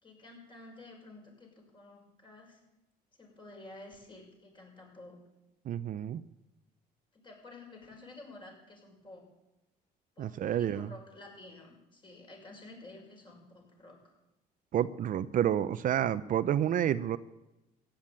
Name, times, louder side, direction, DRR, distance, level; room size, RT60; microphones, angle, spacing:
voice 1, 0.0-2.6 3.2-5.2 7.1-9.3 10.2-14.1, left 2 dB, 30° left, 0 dB, 6.1 m, -51 dB
voice 2, 5.7-6.2 10.2-10.9 14.7-17.2, right 10 dB, 55° right, 14 dB, 0.6 m, -29 dB
15.0 x 10.5 x 8.9 m, 0.95 s
cardioid pair, 110°, 17 cm